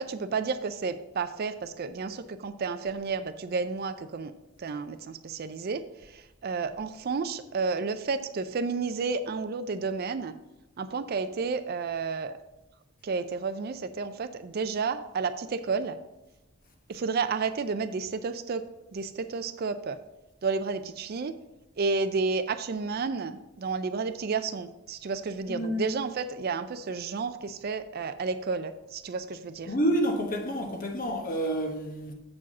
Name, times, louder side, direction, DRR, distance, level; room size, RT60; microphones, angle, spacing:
voice 1, 0.0-4.3 4.6-10.3 10.8-12.4 13.0-16.0 16.9-20.0 20.4-21.4 21.8-29.7, right 4 dB, 45° right, 0.4 m, -31 dB
voice 2, 25.5-25.9 29.7-32.1, equal, 40° left, 1.1 m, -28 dB
7.4 x 4.7 x 5.9 m
head